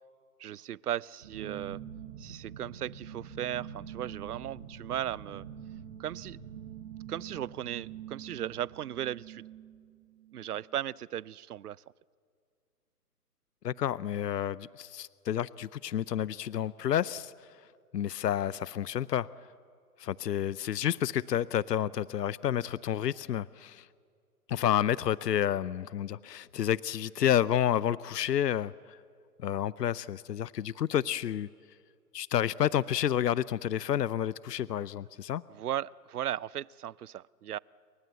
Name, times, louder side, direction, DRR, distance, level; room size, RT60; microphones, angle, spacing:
voice 1, 0.4-1.8 2.2-5.4 6.0-6.4 7.1-9.4 10.3-11.8 35.5-37.6, right 11 dB, 70° right, 24 dB, 0.6 m, -36 dB
sound 1, 1.2-10.7, right 8 dB, 35° right, 6.5 m, -45 dB
voice 2, 13.6-17.3 17.9-19.3 20.0-23.9 24.5-29.0 29.4-31.5 32.1-35.4, left 10 dB, 80° left, 19 dB, 0.7 m, -30 dB
29.0 x 24.0 x 8.0 m, 2.2 s
hypercardioid pair, 165°, 48 cm